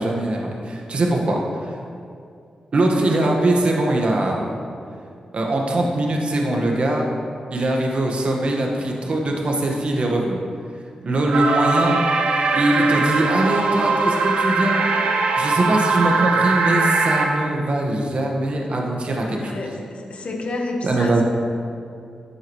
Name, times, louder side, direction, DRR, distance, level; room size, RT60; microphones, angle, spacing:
voice 1, 0.0-1.7 2.7-4.6 5.3-7.1 7.5-10.4 11.0-12.0 12.5-14.9 15.4-19.6 20.8-21.2, right 1 dB, 55° right, 0 dB, 1.5 m, -21 dB
sound 1, 11.3-17.3, right 3 dB, 85° right, 1.0 m, -20 dB
voice 2, 19.2-21.2, left 2 dB, 60° left, 2 dB, 1.3 m, -30 dB
11.5 x 8.7 x 3.2 m, 2.4 s
cardioid pair, 65°, 2 cm